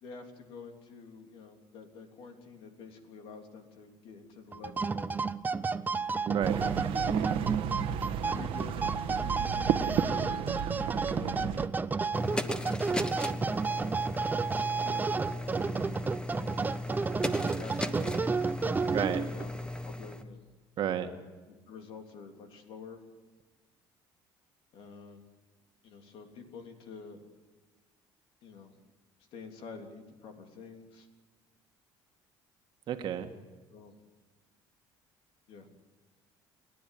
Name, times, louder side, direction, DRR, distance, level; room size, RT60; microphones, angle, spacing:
voice 1, 0.0-5.3 5.7-6.2 6.6-6.8 7.1-7.5 8.3-10.7 11.0-11.7 12.3-12.8 13.4-13.8 14.8-15.0 15.3-15.6 17.2-19.5 19.8-20.4 21.7-23.0 24.7-25.2 25.8-27.2 28.4-28.7 29.3-31.1 33.7-33.9 35.5-35.7, left 5 dB, 70° left, 4 dB, 3.3 m, -48 dB
sound 1, 4.5-19.5, right 4 dB, 20° right, 0.7 m, -31 dB
voice 2, 6.3-6.6 18.9-19.2 20.8-21.1 32.9-33.3, right 9 dB, 55° right, 6 dB, 1.7 m, -31 dB
sound 2, 6.4-11.7, right 9 dB, 70° right, 1.3 m, -33 dB
sound 3, 12.1-20.2, left 1 dB, 10° left, 1.2 m, -37 dB
29.5 x 10.5 x 9.4 m, 1.3 s
cardioid pair, 105°, 9 cm